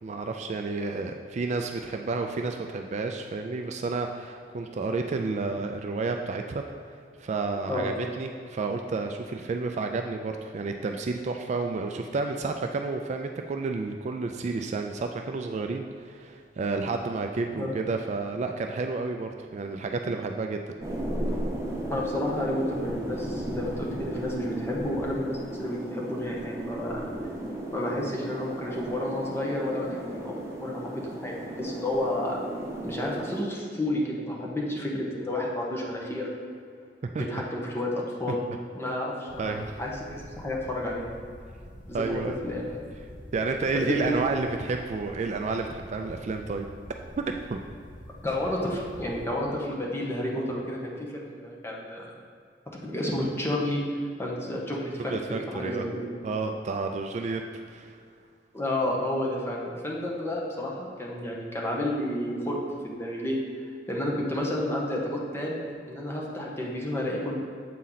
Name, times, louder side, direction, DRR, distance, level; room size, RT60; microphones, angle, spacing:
voice 1, 0.0-6.6 7.2-20.6 37.0-37.4 38.3-38.4 39.4-39.7 41.9-42.4 43.3-46.7 47.2-47.6 55.1-55.8 56.2-57.4 57.7-58.0, right 3 dB, 40° right, 4 dB, 0.3 m, -31 dB
sound 1, 20.8-33.4, right 1 dB, 15° right, 0.8 m, -35 dB
voice 2, 21.9-27.0 27.7-32.4 32.8-36.3 37.2-38.4 38.7-41.1 41.9-42.7 43.7-44.2 48.2-52.0 52.8-53.8 54.2-56.0 58.5-63.4 63.9-65.6 65.9-67.4, left 1 dB, 15° left, -3 dB, 0.9 m, -31 dB
sound 2, 39.3-49.3, equal, 50° left, 0.9 m, -46 dB
7.4 x 4.3 x 4.0 m, 2.2 s
head